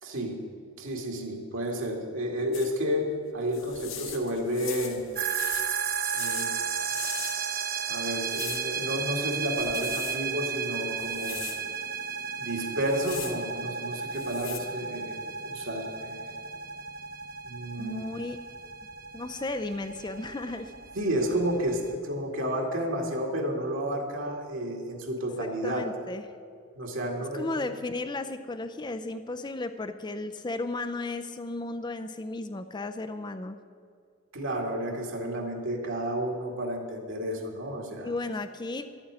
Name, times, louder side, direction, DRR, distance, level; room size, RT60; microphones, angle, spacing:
voice 1, 0.0-0.4 0.8-5.0 6.1-6.5 7.0-7.1 7.9-11.5 12.4-16.2 17.5-18.1 20.9-25.8 26.7-27.6 34.3-38.1, equal, 70° right, 1 dB, 2.3 m, -31 dB
sound 1, 2.5-2.7 3.5-7.6 8.2-8.7 9.5-10.2 11.0-11.6 12.7-13.4 14.1-14.6, left 10 dB, 70° left, 1.5 m, -41 dB
sound 2, 5.2-21.9, right 6 dB, 45° right, 0.8 m, -34 dB
voice 2, 17.8-18.4 19.1-20.7 25.4-26.3 27.3-33.6 38.0-38.9, left 2 dB, 20° left, 9 dB, 0.4 m, -34 dB
11.5 x 8.8 x 9.6 m, 2.2 s
head